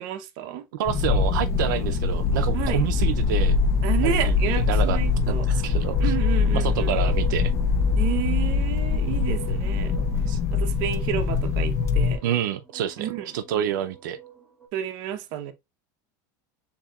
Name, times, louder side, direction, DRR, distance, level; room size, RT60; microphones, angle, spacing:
voice 1, 0.0-0.6 2.5-2.8 3.8-5.5 6.0-6.9 8.0-9.9 10.5-12.2 13.0-13.6 14.7-15.5, right 10 dB, 45° right, 0.8 m, -31 dB
voice 2, 0.7-3.6 4.0-5.0 5.3-6.1 6.5-7.5 10.0-10.4 12.2-13.1 13.3-14.2, right 10 dB, 90° right, 0.5 m, -28 dB
sound 1, 0.9-12.2, left 5 dB, 30° left, 0.5 m, -23 dB
sound 2, 5.3-14.7, right 11 dB, 5° right, 0.9 m, -44 dB
7.0 x 2.8 x 2.3 m
supercardioid pair, 170°, 10 cm